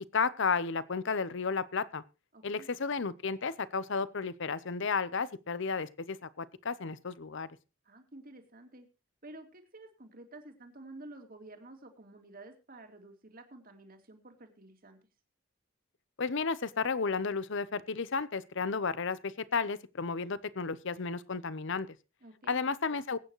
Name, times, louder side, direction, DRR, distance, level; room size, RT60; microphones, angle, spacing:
voice 1, 0.1-2.0 2.4-7.5 16.2-21.9 22.5-23.2, left 5 dB, 65° left, 17 dB, 0.8 m, -33 dB
voice 2, 2.3-2.7 7.8-8.9 9.2-15.0 22.2-22.6, right 2 dB, 45° right, 5 dB, 2.5 m, -51 dB
21.5 x 9.1 x 3.1 m, 0.29 s
head